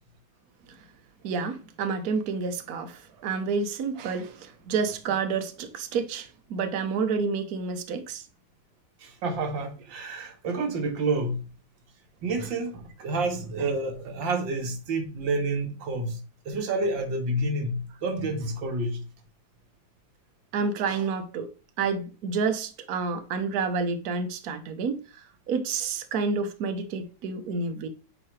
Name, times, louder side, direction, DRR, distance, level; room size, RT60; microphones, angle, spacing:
voice 1, 1.2-8.2 20.5-21.5 21.8-25.0 25.5-27.9, right 5 dB, 60° right, 1.2 m, -29 dB
voice 2, 9.0-11.5 12.2-16.2 16.5-19.0, right 2 dB, 75° right, 1.9 m, -29 dB
7.4 x 4.4 x 3.2 m
omnidirectional pair, 2.1 m